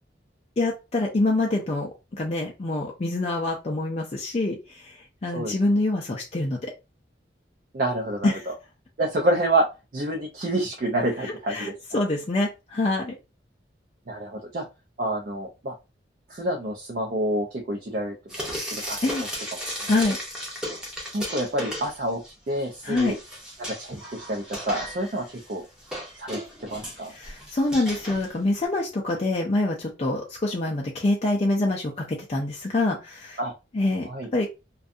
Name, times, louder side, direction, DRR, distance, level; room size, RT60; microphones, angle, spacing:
voice 1, 0.6-6.7 8.2-8.4 11.2-13.1 19.0-19.2 19.9-20.2 22.8-23.1 27.1-33.4 33.7-34.5, left 2 dB, 35° left, 0 dB, 0.4 m, -26 dB
voice 2, 7.7-8.5 9.0-9.6 9.9-11.7 14.1-14.6 15.0-15.7 16.3-19.0 19.5-19.6 20.1-20.2 21.1-23.2 23.8-25.7 26.2-26.4 26.7-27.1 33.4-33.5 34.1-34.3, right 1 dB, 50° right, 1 dB, 0.5 m, -28 dB
Frying (food), 18.3-22.3 22.6-28.6, equal, 5° right, 0.7 m, -35 dB
2.5 x 2.3 x 2.5 m, 0.26 s
head